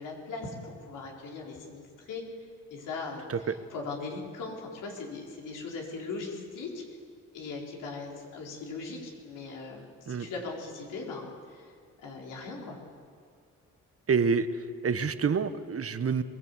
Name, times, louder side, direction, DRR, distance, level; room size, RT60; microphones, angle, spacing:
voice 1, 0.0-2.2 2.7-6.8 7.3-11.7 12.0-12.8, left 3 dB, 85° left, -1 dB, 4.6 m, -39 dB
voice 2, 14.1-14.5 14.8-16.2, right 5 dB, 45° right, 11 dB, 1.3 m, -27 dB
22.0 x 17.5 x 8.3 m, 2.1 s
supercardioid pair, 60°, 31 cm